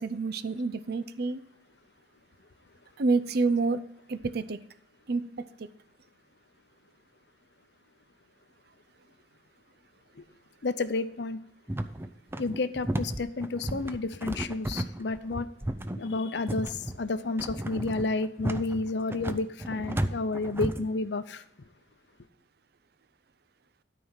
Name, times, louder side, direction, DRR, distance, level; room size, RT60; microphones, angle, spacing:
voice 1, 0.0-1.4 3.0-3.8 4.1-4.6 5.1-5.7, right 3 dB, 60° right, 0.5 m, -28 dB
voice 2, 10.6-11.4 12.4-15.5 16.0-21.4, left 3 dB, 70° left, 0.7 m, -31 dB
sound 1, 11.7-20.9, right 1 dB, 15° right, 0.5 m, -33 dB
12.5 x 4.7 x 5.6 m
head